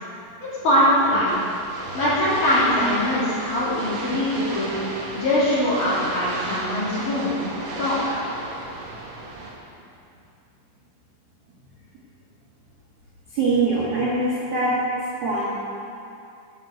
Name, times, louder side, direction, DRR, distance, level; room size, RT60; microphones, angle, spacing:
voice 1, 0.4-1.4 1.9-4.7 5.2-7.3 7.8-8.2, left 1 dB, 45° left, -9 dB, 3.8 m, -22 dB
sound 1, 1.3-9.5, right 2 dB, 60° right, 2.5 m, -34 dB
voice 2, 13.3-14.7 15.2-15.6, right 3 dB, 80° right, -7 dB, 1.4 m, -23 dB
9.6 x 7.1 x 7.8 m, 2.6 s
omnidirectional pair, 5.5 m